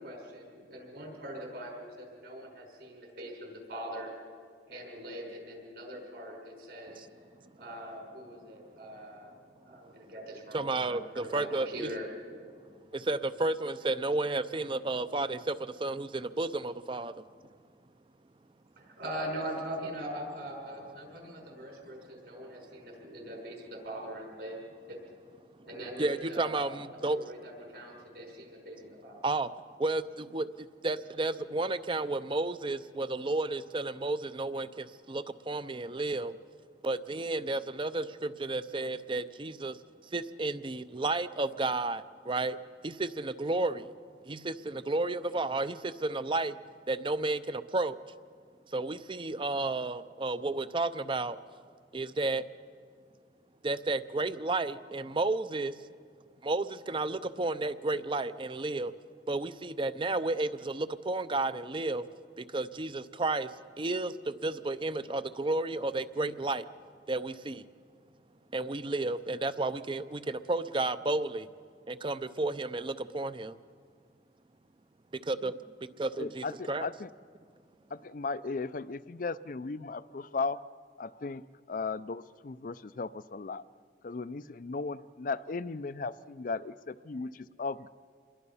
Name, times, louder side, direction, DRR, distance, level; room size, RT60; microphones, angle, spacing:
voice 1, 0.0-4.1 4.7-7.0 7.5-9.3 9.6-12.1 18.8-24.6 24.9-25.0 25.6-26.8 27.1-29.2, right 1 dB, 65° right, 0 dB, 5.7 m, -42 dB
voice 2, 10.5-11.9 12.9-17.1 26.0-27.2 29.2-29.5 29.8-36.4 36.8-39.8 40.1-42.6 42.8-43.9 44.3-46.6 46.9-48.0 48.7-51.4 51.9-52.4 53.6-55.8 56.4-58.9 59.3-62.0 62.4-66.6 67.1-67.7 68.5-71.5 71.9-73.6 75.3-75.5 76.0-76.9, right 2 dB, 30° right, 13 dB, 0.6 m, -32 dB
voice 3, 76.2-77.1 77.9-80.6 81.0-81.4 81.7-83.6 84.0-87.9, left 4 dB, 45° left, 16 dB, 0.5 m, -36 dB
27.5 x 21.5 x 5.6 m, 2.1 s
head